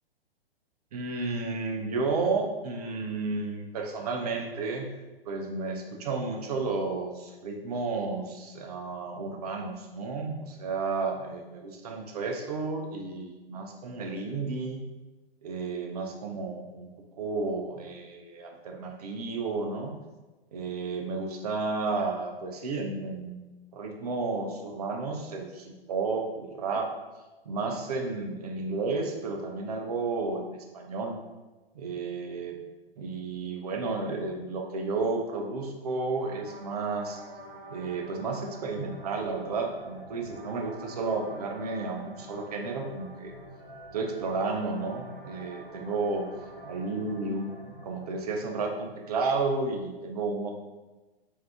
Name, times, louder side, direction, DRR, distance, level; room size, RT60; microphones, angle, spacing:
voice 1, 0.9-4.9 5.3-14.8 15.4-16.9 17.2-19.9 20.5-23.4 23.7-26.9 27.5-31.2 31.7-32.6 33.0-37.2 37.7-43.3 43.9-46.3 46.6-50.6, right 3 dB, 40° right, 3 dB, 0.5 m, -32 dB
sound 1, 36.2-48.2, right 1 dB, 15° right, 1.0 m, -47 dB
3.3 x 2.6 x 3.5 m, 1.2 s
figure-of-eight pair, 115°, 31 cm